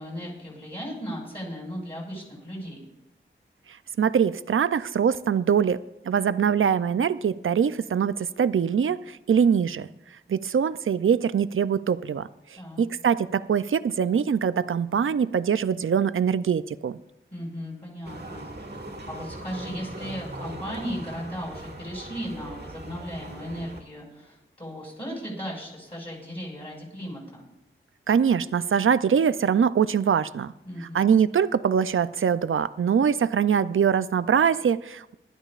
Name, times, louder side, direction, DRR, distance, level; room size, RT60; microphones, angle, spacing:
voice 1, 0.0-2.8 12.6-12.8 17.3-18.5 19.1-27.5 30.6-31.0, equal, 30° left, -4 dB, 5.8 m, -36 dB
voice 2, 3.7-9.9 10.3-12.3 12.8-17.0 28.1-30.5 30.8-35.1, right 7 dB, 80° right, 15 dB, 0.4 m, -23 dB
sound 1, 18.0-23.8, right 1 dB, 50° right, 1.8 m, -40 dB
20.0 x 12.5 x 2.5 m, 0.89 s
wide cardioid pair, 55°, 21 cm